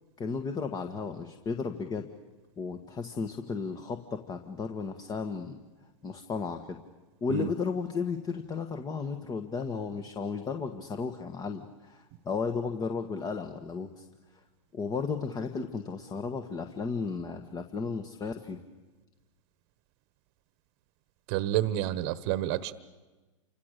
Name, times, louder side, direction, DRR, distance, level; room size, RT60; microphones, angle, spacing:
voice 1, 0.2-2.1 2.6-5.6 6.0-6.8 7.2-14.1 14.7-18.6, left 5 dB, 25° left, 6 dB, 1.6 m, -34 dB
voice 2, 21.3-22.7, right 13 dB, 50° right, 13 dB, 1.3 m, -29 dB
29.0 x 26.0 x 6.8 m, 1.2 s
hypercardioid pair, 115°, 16 cm